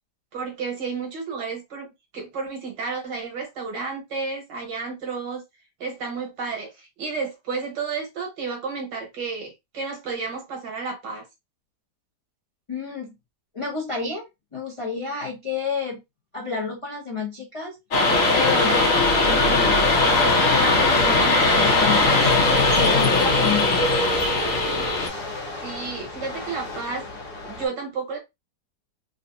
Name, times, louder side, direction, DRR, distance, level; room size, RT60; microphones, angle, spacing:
voice 1, 0.3-1.9 2.1-5.4 5.8-11.3 25.6-27.0 27.4-28.2, right 4 dB, 85° right, 1.9 m, -31 dB
voice 2, 12.7-13.1 13.5-14.3 14.5-16.0 16.3-17.8 18.3-19.8 20.2-22.1 22.6-23.9, left 5 dB, 30° left, 0.5 m, -30 dB
sound 1, 17.9-25.1, left 2 dB, 55° left, 1.3 m, -19 dB
sound 2, 19.0-27.7, left 2 dB, 70° left, 1.6 m, -36 dB
3.9 x 2.4 x 2.6 m
omnidirectional pair, 1.8 m